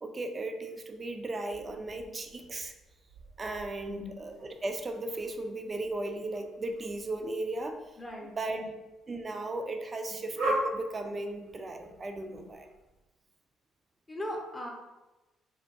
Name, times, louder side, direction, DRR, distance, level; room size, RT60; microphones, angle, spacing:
voice 1, 0.0-2.7 3.4-7.8 8.4-8.6 9.1-12.7, right 2 dB, 30° right, 6 dB, 0.3 m, -36 dB
sound 1, 0.6-13.0, right 1 dB, 70° right, 0.8 m, -41 dB
voice 2, 8.0-8.7 11.8-11.9 14.1-14.7, left 1 dB, 20° left, 0 dB, 0.5 m, -39 dB
2.4 x 2.2 x 2.7 m, 1.1 s
figure-of-eight pair, 45°, 0 cm